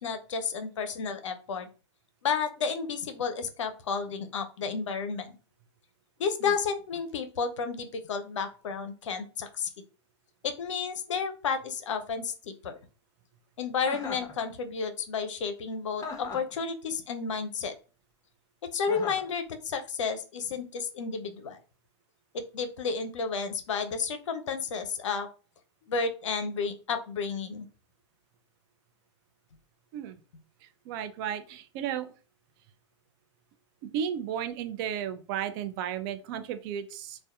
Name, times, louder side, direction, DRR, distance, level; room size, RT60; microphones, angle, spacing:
voice 1, 0.0-1.7 2.2-5.3 6.2-9.7 10.4-12.8 13.6-17.7 18.7-21.6 22.3-25.3 25.9-27.7, left 5 dB, 75° left, 7 dB, 0.5 m, -32 dB
Chuckle chortle, 13.8-14.3 16.0-16.5 18.9-19.3, left 4 dB, 20° left, 0.8 m, -38 dB
voice 2, 30.6-32.1 33.8-37.2, right 9 dB, 45° right, 9 dB, 0.4 m, -34 dB
2.6 x 2.1 x 2.3 m, 0.35 s
hypercardioid pair, 100°, 16 cm